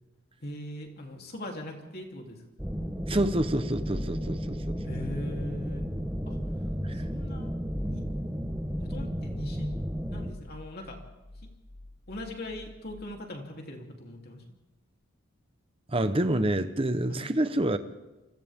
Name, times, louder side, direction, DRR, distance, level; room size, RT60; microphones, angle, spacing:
voice 1, 0.4-2.4 4.8-5.8 6.3-6.4 6.9-7.5 7.8-8.0 8.8-9.7 10.1-11.0 12.1-14.4 17.1-17.3, left 1 dB, 45° left, 3.5 m, -40 dB
sound 1, 2.6-10.3, equal, 5° right, 1.2 m, -33 dB
voice 2, 3.1-4.8 6.8-7.1 15.9-17.8, right 1 dB, 25° right, 1.0 m, -27 dB
sound 2, 10.3-13.1, left 1 dB, 25° left, 2.5 m, -50 dB
29.5 x 25.0 x 3.7 m
head